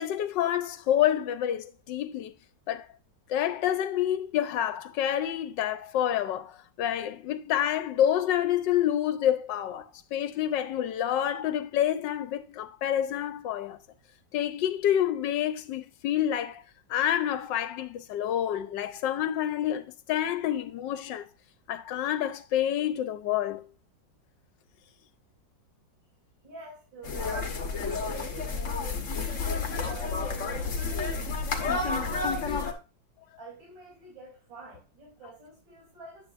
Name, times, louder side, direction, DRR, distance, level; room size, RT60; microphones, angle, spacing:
voice 1, 0.0-2.3 2.7-2.9 3.3-9.9 10.1-13.8 14.3-16.6 16.9-21.3 21.7-23.7 27.9-28.0, left 11 dB, 75° left, 1.3 m, -28 dB
voice 2, 26.4-27.6 28.0-29.0 29.7-31.2 32.0-32.8 33.4-36.3, right 2 dB, 90° right, 3.7 m, -48 dB
Ridley Road, 27.0-32.7, left 4 dB, 45° left, 1.5 m, -30 dB
9.6 x 8.0 x 2.5 m
omnidirectional pair, 2.0 m